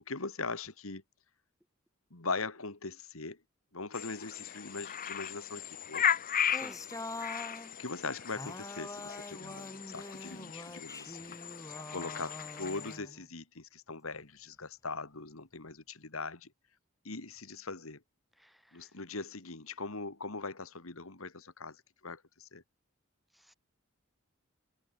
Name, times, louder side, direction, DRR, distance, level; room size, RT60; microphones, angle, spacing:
voice 1, 0.1-1.0 2.1-3.4 3.7-6.1 7.8-11.4 11.7-16.5 17.0-18.0 18.7-22.6, left 3 dB, 75° left, 2.3 m, -41 dB
sound 1, 3.9-13.0, left 8 dB, 40° left, 0.8 m, -37 dB
sound 2, 6.5-7.7 8.3-13.3, left 2 dB, 15° left, 7.5 m, -44 dB
voice 2, 6.5-6.8 18.4-18.9 23.4-23.5, equal, ahead, 5.2 m, -54 dB
head